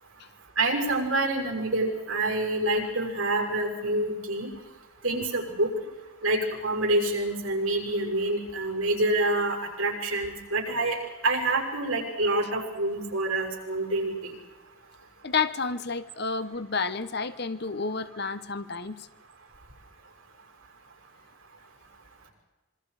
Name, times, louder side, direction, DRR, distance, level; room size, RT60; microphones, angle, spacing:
voice 1, 0.6-4.5 5.0-5.7 6.2-11.0 11.2-14.3, right 2 dB, 85° right, 1 dB, 6.6 m, -27 dB
voice 2, 15.2-19.0, left 4 dB, 50° left, 12 dB, 1.1 m, -30 dB
26.5 x 24.0 x 5.0 m, 1.2 s
head